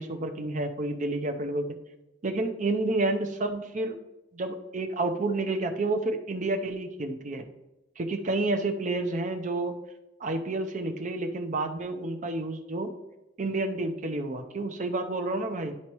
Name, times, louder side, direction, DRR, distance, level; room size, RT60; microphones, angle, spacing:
voice 1, 0.0-1.7 2.2-4.0 4.3-7.4 8.0-9.7 10.2-12.9 13.4-15.7, right 2 dB, 40° right, 6 dB, 0.7 m, -30 dB
12.0 x 4.3 x 3.0 m, 0.99 s
head